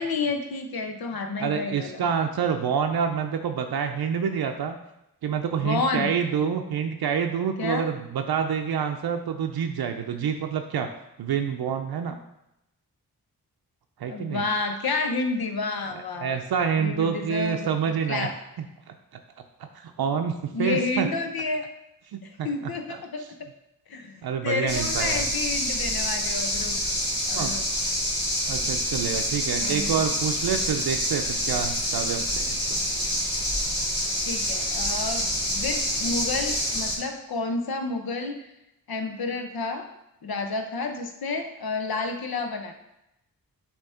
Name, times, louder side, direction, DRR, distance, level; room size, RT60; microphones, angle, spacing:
voice 1, 0.0-2.0 5.6-6.1 7.6-7.9 14.1-16.4 16.8-17.7 18.1-18.3 20.5-21.7 22.2-23.2 23.9-26.8 27.3-27.7 29.6-30.0 34.3-38.4 38.9-39.8 40.2-42.7, left 3 dB, 75° left, 5 dB, 0.9 m, -30 dB
voice 2, 1.4-4.8 5.2-10.9 11.2-12.2 14.0-14.5 16.2-18.3 18.6-18.9 19.6-21.1 22.1-23.3 24.2-25.3 27.4-27.6 28.4-32.8, right 7 dB, 80° right, 5 dB, 0.5 m, -28 dB
sound 1, 24.7-37.0, equal, 15° left, 2.3 m, -27 dB
7.0 x 3.0 x 5.6 m, 0.86 s
wide cardioid pair, 85°, 37 cm